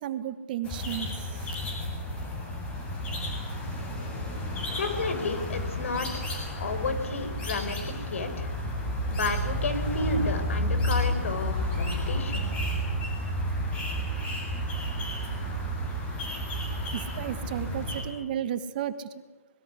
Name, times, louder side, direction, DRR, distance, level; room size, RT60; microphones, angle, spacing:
voice 1, 0.0-1.1 16.9-19.1, right 10 dB, 35° right, 12 dB, 1.5 m, -33 dB
sound 1, 0.6-18.0, equal, 15° left, 7.6 m, -31 dB
voice 2, 4.8-6.1 6.5-7.8 8.1-8.5 9.1-12.5, left 3 dB, 60° left, 8 dB, 6.0 m, -31 dB
26.0 x 22.0 x 9.8 m, 1.1 s
hypercardioid pair, 150°, 8 cm